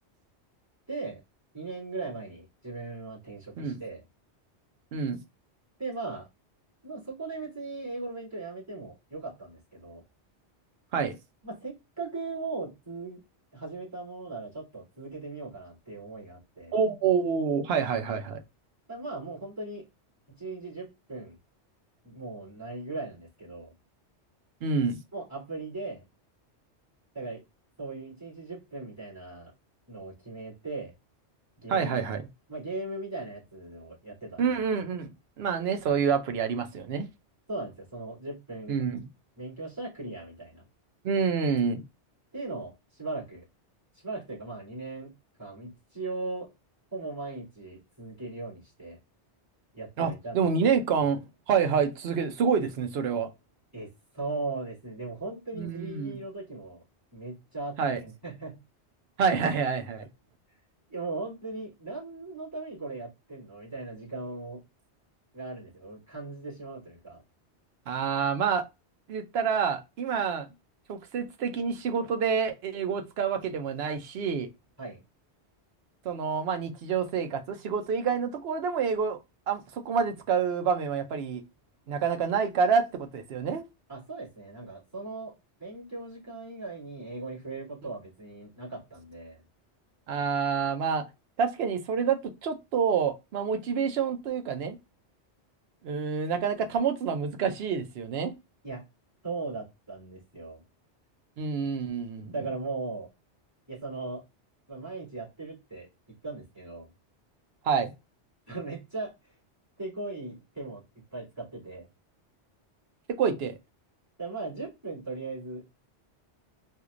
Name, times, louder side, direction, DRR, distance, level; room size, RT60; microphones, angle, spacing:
voice 1, 0.9-1.2 1.5-4.0 5.8-6.3 6.8-10.0 11.4-13.2 13.5-16.7 18.9-19.8 20.3-21.4 22.0-23.7 25.1-26.0 27.1-27.4 27.8-29.5 29.9-30.9 31.6-32.2 32.5-34.6 37.5-38.7 39.4-40.7 42.3-43.4 43.9-45.1 45.4-46.5 46.9-49.0 49.7-50.7 53.7-56.8 57.1-58.6 60.9-64.6 65.3-67.2 74.8-75.0 83.9-85.3 85.6-89.4 98.6-98.8 99.2-100.6 102.3-103.1 103.7-104.2 104.7-105.9 106.2-106.9 108.5-109.3 109.8-110.8 111.1-111.9 114.2-115.7, right 3 dB, 15° right, 2.4 m, -38 dB
voice 2, 16.7-18.4 24.6-25.0 31.7-32.3 34.4-37.1 38.7-39.1 41.0-41.8 50.0-53.3 55.5-56.2 57.8-58.0 59.2-60.1 67.9-68.7 69.1-70.5 70.9-74.5 76.0-79.2 79.5-81.4 81.9-83.6 90.1-91.1 91.4-94.8 95.8-98.3 101.4-102.3 107.6-107.9 113.1-113.5, right 6 dB, 65° right, 0.9 m, -27 dB
4.4 x 2.5 x 2.4 m
omnidirectional pair, 1.2 m